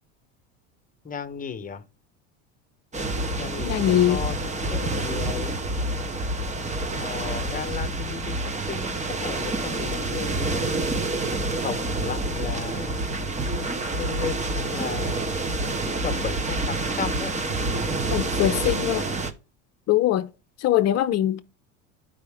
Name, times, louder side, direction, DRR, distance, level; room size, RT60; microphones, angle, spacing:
voice 1, 1.0-1.8 3.4-3.7 4.1-5.5 7.0-8.4 8.7-10.7 11.6-13.0 13.9-14.4 14.7-15.3 15.8-17.3 18.9-19.0, left 6 dB, 20° left, 1.2 m, -34 dB
sound 1, 2.9-19.3, right 2 dB, 20° right, 1.1 m, -28 dB
voice 2, 3.6-4.2 18.1-19.0 19.9-20.3 20.6-21.4, left 12 dB, 45° left, 0.7 m, -22 dB
11.5 x 5.1 x 3.6 m
hypercardioid pair, 95°, 37 cm